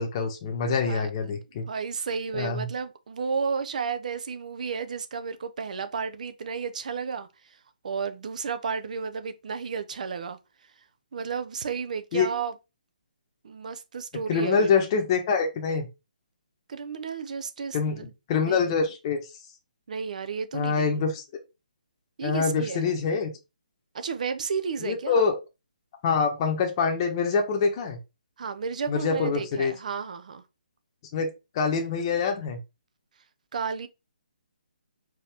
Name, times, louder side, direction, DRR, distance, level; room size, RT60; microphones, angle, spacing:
voice 1, 0.0-1.6 2.3-2.7 12.1-12.3 14.3-15.9 17.7-19.2 20.5-21.2 22.2-23.3 24.8-25.3 26.0-28.0 28.9-29.7 31.1-31.3 31.5-32.6, left 5 dB, 30° left, 1.0 m, -25 dB
voice 2, 0.6-1.1 1.7-7.3 7.8-10.4 11.1-12.5 13.4-14.9 16.7-18.1 18.4-18.7 19.9-21.0 22.2-22.8 23.9-25.3 28.4-30.4 33.5-33.9, right 5 dB, 55° right, 0.7 m, -32 dB
4.6 x 3.0 x 3.4 m
hypercardioid pair, 155°, 5 cm